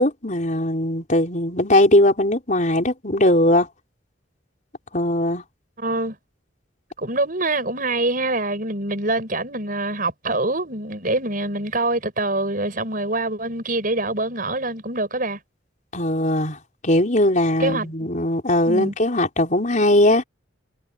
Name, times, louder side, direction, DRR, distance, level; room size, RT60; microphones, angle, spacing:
voice 1, 0.0-3.7 4.9-5.4 15.9-16.6 16.8-20.2, left 1 dB, 40° left, 4.8 m, -19 dB
voice 2, 5.8-6.2 7.0-15.4 17.6-17.9 18.7-18.9, right 2 dB, 45° right, 7.4 m, -25 dB
head